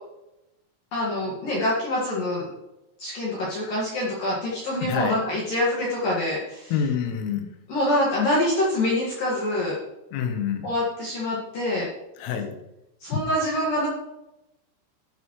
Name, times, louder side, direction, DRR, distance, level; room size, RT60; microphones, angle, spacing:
voice 1, 0.9-2.5 3.0-6.9 7.7-9.8 10.6-11.9 13.0-13.9, left 1 dB, 55° left, -5 dB, 2.9 m, -25 dB
voice 2, 4.8-5.2 6.7-7.5 10.1-10.7 12.2-12.6, left 7 dB, 85° left, 5 dB, 3.9 m, -27 dB
12.0 x 9.1 x 3.2 m, 0.91 s
omnidirectional pair, 5.9 m